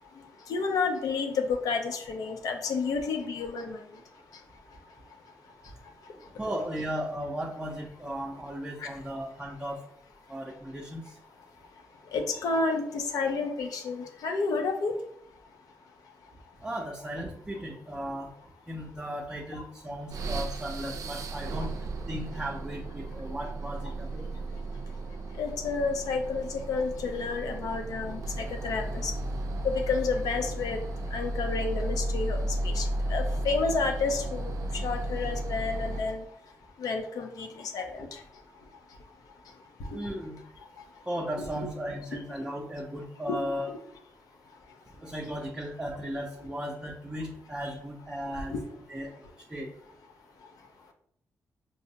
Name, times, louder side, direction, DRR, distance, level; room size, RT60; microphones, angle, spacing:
voice 1, 0.5-3.8 8.8-8.9 12.1-15.0 19.5-19.6 25.4-29.1 29.6-30.8 31.1-36.2 36.8-38.2 39.8-40.0 41.4-41.7 42.1-42.2 43.3-43.4 47.6-47.7 48.5-48.6, left 4 dB, 80° left, 4 dB, 0.5 m, -30 dB
voice 2, 6.4-9.8 10.3-11.2 16.6-18.3 18.7-24.3 39.9-40.4 41.1-43.7 45.0-48.5 48.9-49.7, equal, 15° right, -3 dB, 0.6 m, -36 dB
sound 1, 20.1-36.3, right 1 dB, 60° right, 0.4 m, -34 dB
5.0 x 2.0 x 2.7 m, 0.68 s
cardioid pair, 70°, 6 cm